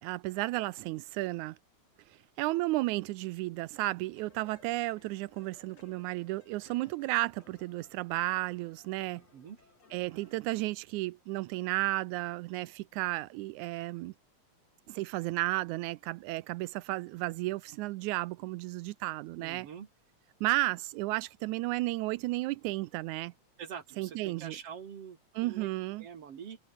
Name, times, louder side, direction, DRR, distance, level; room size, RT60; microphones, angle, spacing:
voice 1, 0.0-1.6 2.4-9.2 9.9-14.1 14.9-19.7 20.4-23.3 24.0-24.6 25.4-26.1, right 19 dB, 85° right, 2.0 m, -33 dB
sound 1, 4.2-10.6, left 3 dB, 55° left, 7.1 m, -62 dB
voice 2, 19.4-19.9 23.6-25.7 26.0-26.6, right 7 dB, 55° right, 2.7 m, -45 dB
omnidirectional pair, 3.4 m